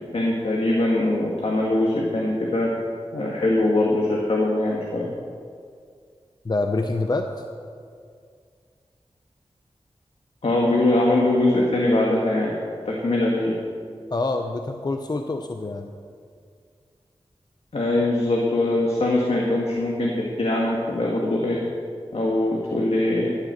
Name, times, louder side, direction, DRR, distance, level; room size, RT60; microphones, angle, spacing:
voice 1, 0.1-2.7 3.1-5.1 10.4-12.5 12.8-13.5 17.7-21.6 22.1-23.3, left 1 dB, 70° left, -2 dB, 1.6 m, -22 dB
voice 2, 6.4-7.4 14.1-15.9, left 2 dB, 40° left, 5 dB, 0.7 m, -26 dB
13.5 x 8.0 x 6.6 m, 2.2 s
wide cardioid pair, 70°, 11 cm